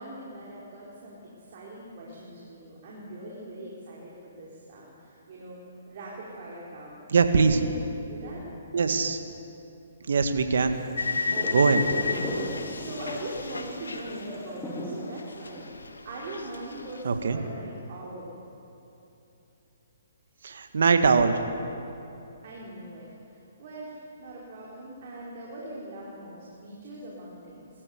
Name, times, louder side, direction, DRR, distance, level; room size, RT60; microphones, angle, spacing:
voice 1, 0.0-7.0 7.4-7.7 8.1-8.4 11.3-18.3 22.4-27.7, right 1 dB, 50° right, -4 dB, 4.5 m, -41 dB
voice 2, 7.1-7.6 8.7-9.2 10.1-10.7 11.5-11.8 17.0-17.4 20.4-21.4, right 5 dB, 70° right, 7 dB, 1.8 m, -22 dB
sound 1, 10.7-15.6, equal, 5° left, 2.6 m, -38 dB
sound 2, 11.0-14.9 15.2-17.0, left 4 dB, 85° left, 1.9 m, -32 dB
23.0 x 14.5 x 8.1 m, 2.9 s
hypercardioid pair, 140°, 0 cm